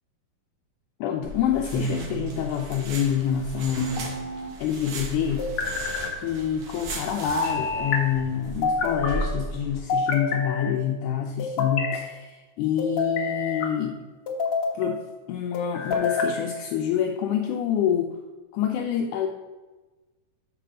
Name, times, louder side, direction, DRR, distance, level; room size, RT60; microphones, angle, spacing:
voice 1, 1.0-4.2 4.6-5.5 6.2-14.0 14.7-15.0 15.3-18.2 18.5-19.3, left 9 dB, 80° left, 2 dB, 1.9 m, -27 dB
sound 1, 1.2-9.8, right 1 dB, 65° right, 2.0 m, -36 dB
sound 2, 1.7-2.4 3.8-4.5 5.4-6.2 7.2-8.0 8.6-9.3 9.9-10.7 11.4-12.0 12.8-13.7 14.3-14.8 15.5-16.4, left 3 dB, 65° left, 1.4 m, -28 dB
6.8 x 4.8 x 6.2 m, 1.2 s
omnidirectional pair, 3.7 m